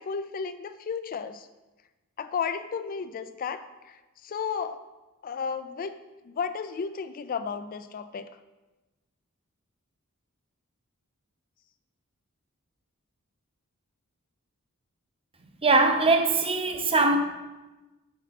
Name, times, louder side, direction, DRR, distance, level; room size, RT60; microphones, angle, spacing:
voice 1, 0.0-1.5 2.2-4.8 5.2-5.9 6.3-8.3, left 6 dB, 40° left, 11 dB, 0.4 m, -33 dB
voice 2, 15.6-17.2, right 3 dB, 25° right, 5 dB, 0.8 m, -21 dB
8.3 x 7.0 x 4.1 m, 1.1 s
head